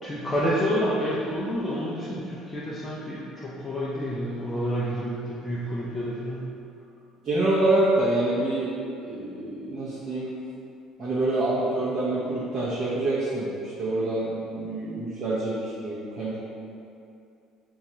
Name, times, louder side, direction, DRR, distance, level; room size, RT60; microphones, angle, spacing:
voice 1, 0.0-6.6, equal, 15° left, -8 dB, 0.4 m, -29 dB
voice 2, 7.2-10.3 11.0-16.4, right 2 dB, 35° right, -9 dB, 0.6 m, -26 dB
2.7 x 2.3 x 4.1 m, 2.6 s
cardioid pair, 140°, 0 cm